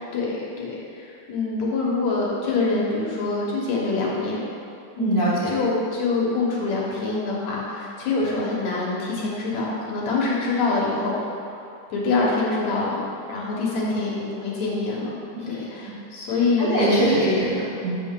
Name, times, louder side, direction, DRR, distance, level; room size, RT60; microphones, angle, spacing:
voice 1, 0.1-4.5 4.9-11.5 11.9-13.0 13.3-15.2 15.5-16.7, left 3 dB, 70° left, -4 dB, 2.3 m, -25 dB
voice 2, 5.0-5.6 15.4-15.5 16.6-18.0, right 1 dB, 40° right, -12 dB, 1.4 m, -22 dB
7.6 x 6.3 x 3.6 m, 2.5 s
omnidirectional pair, 3.6 m